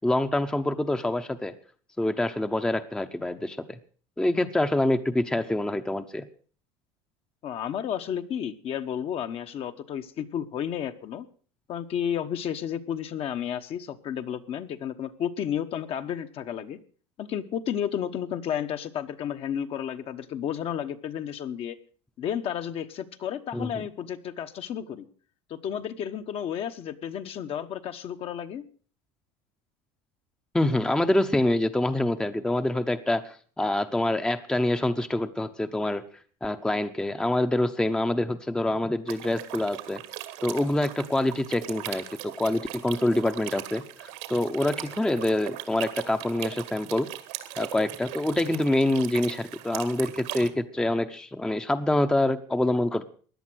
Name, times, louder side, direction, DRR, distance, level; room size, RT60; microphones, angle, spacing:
voice 1, 0.0-1.5 2.0-3.8 4.2-6.2 23.5-23.7 30.5-36.0 36.4-40.0 40.4-47.1 47.6-53.0, left 1 dB, 5° left, 8 dB, 0.8 m, -26 dB
voice 2, 7.4-11.3 11.7-16.8 17.2-21.8 22.2-25.1 25.5-28.6, left 9 dB, 45° left, 8 dB, 1.2 m, -32 dB
sound 1, 39.1-50.5, right 16 dB, 80° right, 2.1 m, -39 dB
16.5 x 10.5 x 6.2 m, 0.43 s
supercardioid pair, 125°, 14 cm